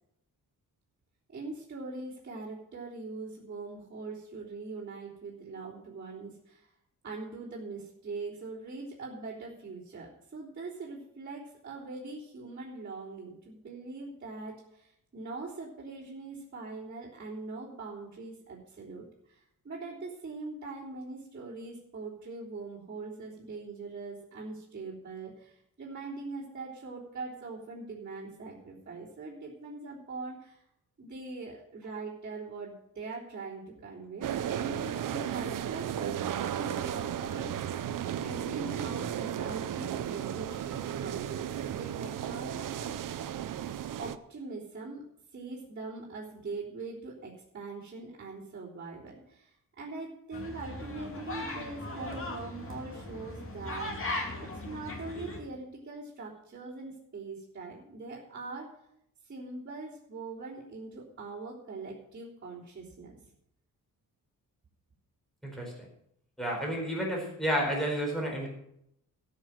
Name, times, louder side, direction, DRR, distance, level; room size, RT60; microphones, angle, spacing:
voice 1, 1.3-6.7 7.0-30.6 31.0-37.9 38.2-43.1 44.0-45.0 45.3-58.7 59.2-63.2, right 3 dB, 35° right, -9 dB, 3.5 m, -42 dB
sound 1, 34.2-44.2, right 10 dB, 70° right, 0.7 m, -34 dB
sound 2, 50.3-55.4, left 2 dB, 40° left, 2.7 m, -38 dB
voice 2, 65.4-65.7 66.4-68.5, equal, ahead, -2 dB, 4.4 m, -31 dB
13.5 x 6.8 x 7.8 m, 0.75 s
wide cardioid pair, 135°, 34 cm